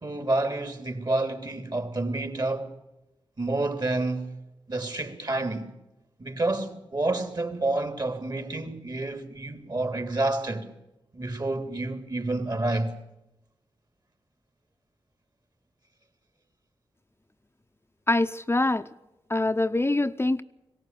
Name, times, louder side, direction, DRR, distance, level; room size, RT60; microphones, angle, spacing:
voice 1, 0.0-2.7 3.4-4.4 4.7-5.7 6.2-10.7 11.1-12.9, right 2 dB, 45° right, 3.2 m, -29 dB
voice 2, 18.1-18.9 19.3-20.4, left 2 dB, 25° left, 0.8 m, -24 dB
19.0 x 18.0 x 7.6 m
cardioid pair, 50°, 9 cm